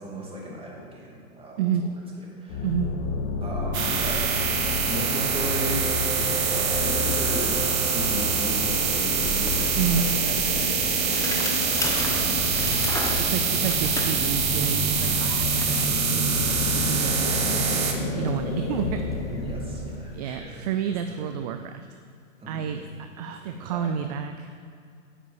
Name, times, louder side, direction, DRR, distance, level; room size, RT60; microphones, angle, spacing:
voice 1, 0.0-1.7 2.4-2.6 3.4-4.3 4.8-5.9 6.2-12.8 15.4-15.5 19.2-21.3 22.4-22.8 23.3-24.0, right 1 dB, 15° right, -3 dB, 2.5 m, -37 dB
voice 2, 1.6-1.9 2.6-2.9 9.8-10.1 13.2-19.2 20.1-22.0 22.5-24.5, right 8 dB, 30° right, 8 dB, 0.4 m, -30 dB
sound 1, 2.5-19.9, left 2 dB, 40° left, 1.8 m, -30 dB
sound 2, 3.7-17.9, right 7 dB, 70° right, 1.6 m, -25 dB
Bicycle, 7.0-7.1 7.4-20.3, left 2 dB, 5° left, 1.0 m, -37 dB
9.8 x 7.3 x 6.8 m, 2.3 s
hypercardioid pair, 115°, 42 cm